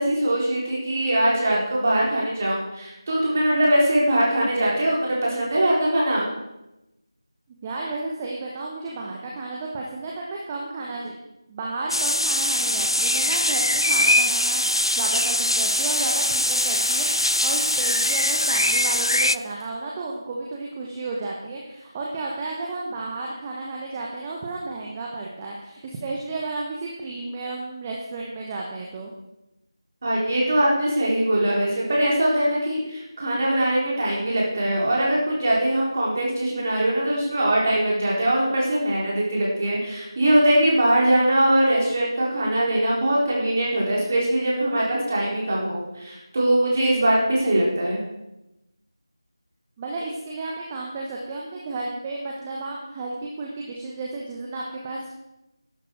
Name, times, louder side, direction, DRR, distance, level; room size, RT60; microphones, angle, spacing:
voice 1, 0.0-6.3 30.0-48.1, right 1 dB, 30° right, -4 dB, 4.2 m, -22 dB
voice 2, 7.6-17.1 17.4-29.1 49.8-55.1, right 3 dB, 15° right, -2 dB, 1.1 m, -33 dB
sound 1, 11.9-19.4, left 1 dB, 85° left, 0.4 m, -22 dB
Rattle (instrument), 13.7-19.7, left 1 dB, 60° left, 4.5 m, -36 dB
13.0 x 12.0 x 4.8 m, 0.93 s
figure-of-eight pair, 165°, 3 cm